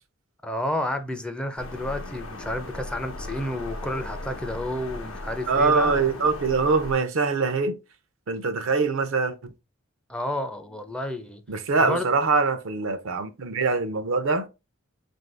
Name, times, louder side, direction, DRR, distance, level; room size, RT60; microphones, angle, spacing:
voice 1, 0.4-6.2 10.1-11.4 11.8-12.1, left 1 dB, 5° left, 0.4 m, -31 dB
sound 1, 1.6-6.9, left 2 dB, 90° left, 0.8 m, -37 dB
voice 2, 5.5-7.8 8.3-9.3 11.5-14.5, right 4 dB, 85° right, 0.6 m, -23 dB
3.8 x 2.6 x 3.3 m
head